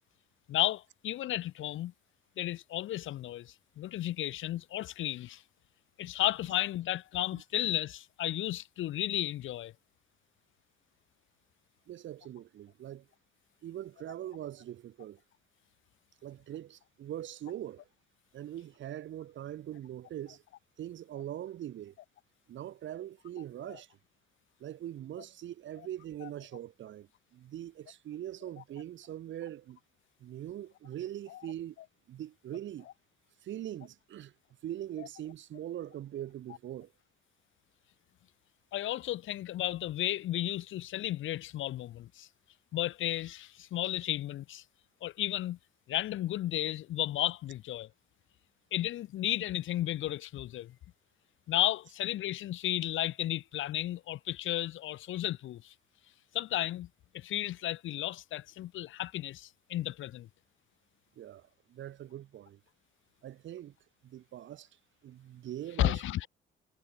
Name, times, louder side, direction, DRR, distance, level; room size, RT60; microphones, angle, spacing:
voice 1, 0.5-1.9 2.4-5.4 6.0-9.7 23.7-23.8 26.2-26.3 31.3-31.4 35.0-35.1 38.7-42.3 42.7-44.6 45.0-45.6 45.9-47.9 48.7-50.7 51.5-55.7 56.3-56.9 57.1-60.3 65.8-66.3, left 14 dB, 80° left, 1.6 m, -33 dB
voice 2, 11.9-13.1 13.6-15.2 16.2-17.8 18.3-20.4 20.8-21.9 22.5-24.0 24.6-29.8 30.2-31.8 32.1-32.9 33.4-34.3 34.6-36.9 61.2-62.6 63.2-63.8 64.0-64.7 65.0-66.3, right 12 dB, 70° right, 2.2 m, -42 dB
cardioid pair, 90°, 20 cm